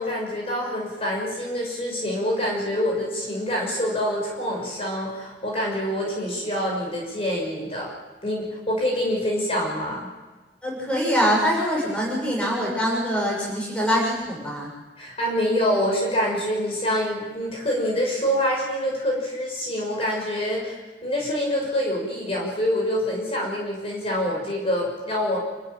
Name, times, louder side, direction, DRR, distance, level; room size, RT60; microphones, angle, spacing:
voice 1, 0.0-7.9 8.2-10.1 15.0-25.4, equal, 30° left, -2 dB, 6.1 m, -26 dB
voice 2, 10.6-14.7, equal, 5° left, -3 dB, 6.6 m, -24 dB
28.5 x 14.0 x 9.1 m, 1.3 s
head